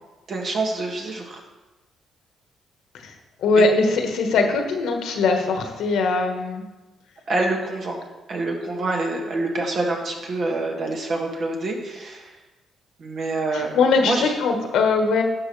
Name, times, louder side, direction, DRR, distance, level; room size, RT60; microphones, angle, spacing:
voice 1, 0.3-1.4 3.6-3.7 7.3-8.0 8.3-12.3 13.0-13.8 14.0-14.3, right 2 dB, 55° right, 0 dB, 1.8 m, -26 dB
voice 2, 3.4-6.6 13.5-15.2, left 3 dB, 80° left, 4 dB, 1.3 m, -21 dB
12.0 x 6.2 x 3.2 m, 1.1 s
cardioid pair, 90°, 0 cm